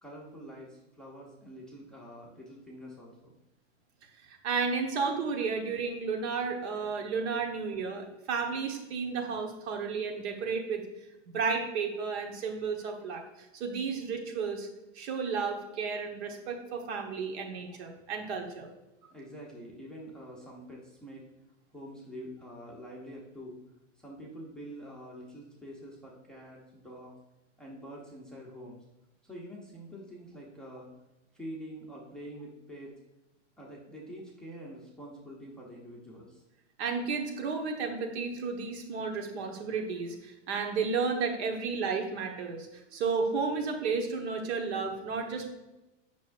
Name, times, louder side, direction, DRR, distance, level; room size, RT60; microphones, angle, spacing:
voice 1, 0.0-3.4 19.1-21.2 21.7-23.6 24.0-27.1 27.6-28.8 29.2-30.9 31.3-32.9 33.6-36.4, equal, ahead, -4 dB, 0.7 m, -46 dB
voice 2, 4.3-10.8 11.3-14.7 14.9-18.7 36.8-45.5, right 5 dB, 60° right, 3 dB, 1.4 m, -32 dB
8.1 x 6.1 x 2.5 m, 0.99 s
supercardioid pair, 155°, 36 cm